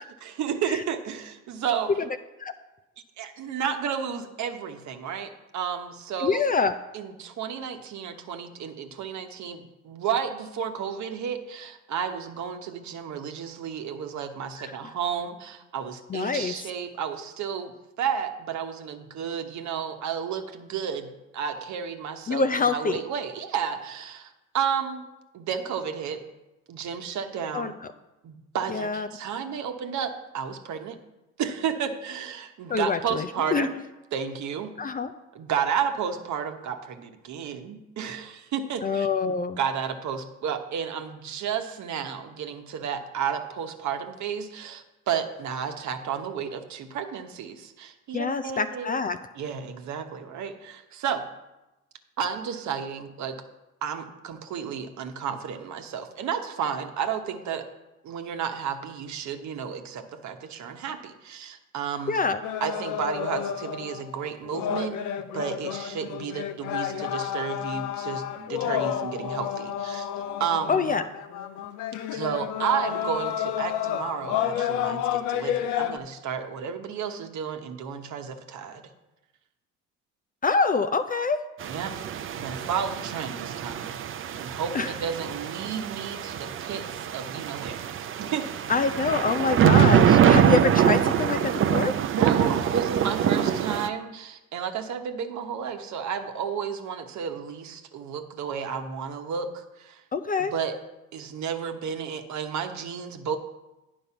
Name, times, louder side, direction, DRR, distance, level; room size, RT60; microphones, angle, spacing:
voice 1, 0.0-1.9 3.2-6.4 6.9-17.7 18.0-25.0 25.3-26.2 26.7-27.8 28.2-31.0 31.4-33.8 34.1-34.8 35.3-49.0 49.3-51.3 52.2-53.4 53.8-57.7 58.0-62.2 62.6-65.0 65.3-70.1 70.4-70.9 72.1-78.8 81.7-81.9 82.3-84.0 84.3-87.9 88.2-88.5 92.1-100.0 100.4-100.8 101.1-103.4, right 7 dB, 55° right, 6 dB, 1.1 m, -32 dB
voice 2, 6.2-6.7 16.1-16.5 22.3-23.0 27.5-27.7 28.7-29.1 32.7-33.7 34.8-35.1 38.8-39.6 48.1-49.2 62.1-62.4 70.7-71.0 80.4-81.4 84.7-84.9 88.7-91.9 100.1-100.5, left 4 dB, 25° left, 10 dB, 0.5 m, -25 dB
sound 1, 62.4-76.0, left 10 dB, 60° left, 0.7 m, -30 dB
sound 2, 81.6-93.9, right 9 dB, 35° right, 0.6 m, -24 dB
9.6 x 5.3 x 5.8 m, 1.0 s
hypercardioid pair, 75°, 35 cm